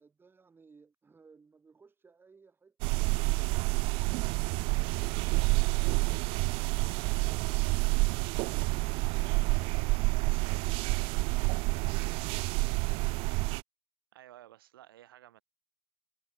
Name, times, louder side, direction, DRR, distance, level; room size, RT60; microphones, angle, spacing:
voice 1, 0.0-4.2, right 5 dB, 15° right, 6.1 m, -62 dB
sound 1, 2.8-13.6, right 27 dB, 45° right, 0.5 m, -28 dB
sound 2, 5.0-10.2, left 10 dB, 75° left, 7.5 m, -68 dB
voice 2, 14.1-15.4, right 13 dB, 70° right, 5.4 m, -54 dB
hypercardioid pair, 90°, 12 cm